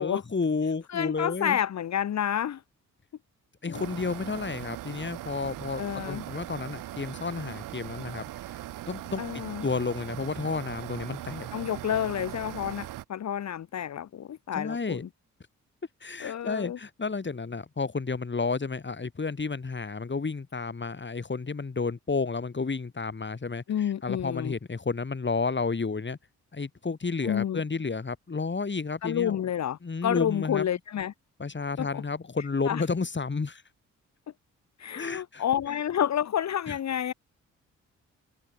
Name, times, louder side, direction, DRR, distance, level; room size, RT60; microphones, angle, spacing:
voice 1, 0.0-1.6 3.6-8.2 8.9-11.5 14.5-15.1 16.0-26.2 26.5-29.5 29.8-30.8 31.4-33.6 35.0-35.4 36.7-36.8, left 4 dB, 35° left, 5.4 m, -31 dB
voice 2, 0.9-2.6 3.7-3.8 5.8-6.2 9.2-9.6 11.5-15.1 16.2-16.8 23.7-24.5 27.2-27.6 29.0-31.1 31.8-32.0 32.6-32.8 34.8-37.1, left 10 dB, 60° left, 1.1 m, -29 dB
sound 1, 3.7-13.0, right 14 dB, 90° right, 3.6 m, -40 dB
supercardioid pair, 60°, 32 cm